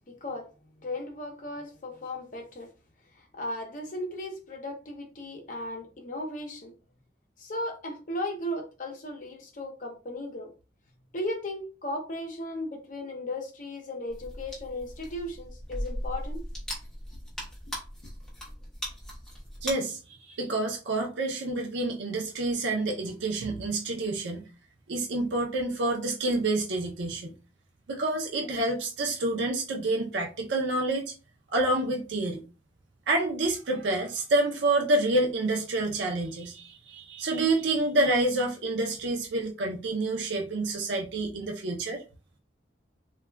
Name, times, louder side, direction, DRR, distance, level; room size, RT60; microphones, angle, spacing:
voice 1, 0.1-0.5 0.8-2.7 3.2-6.7 7.4-10.5 11.1-16.4, left 1 dB, 45° left, 0.6 m, -36 dB
sound 1, 14.1-19.7, equal, 5° left, 0.8 m, -38 dB
voice 2, 19.6-20.0 20.2-24.4 24.9-27.3 27.9-31.1 31.5-32.4 33.1-42.0, right 2 dB, 70° right, 0.5 m, -28 dB
2.3 x 2.1 x 3.2 m
head